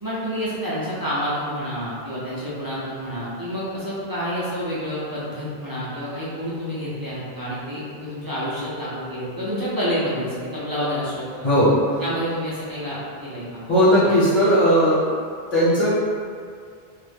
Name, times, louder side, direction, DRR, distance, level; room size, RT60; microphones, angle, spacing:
voice 1, 0.0-11.5 12.0-13.6 14.0-14.1, equal, 35° right, -10 dB, 0.4 m, -28 dB
voice 2, 11.4-12.0 13.7-15.1 15.5-15.9, equal, 45° left, -12 dB, 0.9 m, -17 dB
2.5 x 2.0 x 3.2 m, 2.2 s
omnidirectional pair, 1.0 m